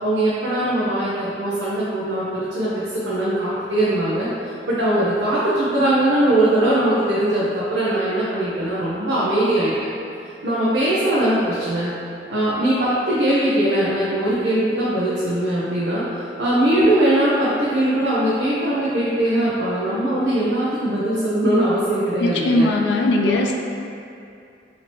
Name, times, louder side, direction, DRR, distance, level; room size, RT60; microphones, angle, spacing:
voice 1, 0.0-4.3 4.7-9.7 10.4-11.9 12.3-16.0 16.4-22.7 23.2-23.3, right 1 dB, 85° right, -9 dB, 0.6 m, -20 dB
voice 2, 22.2-23.5, left 2 dB, 85° left, 2 dB, 0.4 m, -19 dB
4.3 x 2.8 x 2.9 m, 2.5 s
head